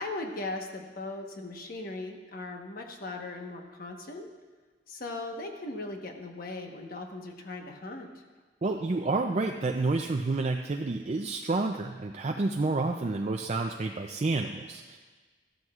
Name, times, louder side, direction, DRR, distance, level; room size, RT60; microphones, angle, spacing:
voice 1, 0.0-4.3 4.9-8.2, left 2 dB, 55° left, 3 dB, 1.2 m, -38 dB
voice 2, 8.6-15.0, right 3 dB, 40° right, 3 dB, 0.4 m, -29 dB
14.0 x 12.0 x 2.4 m, 1.4 s
head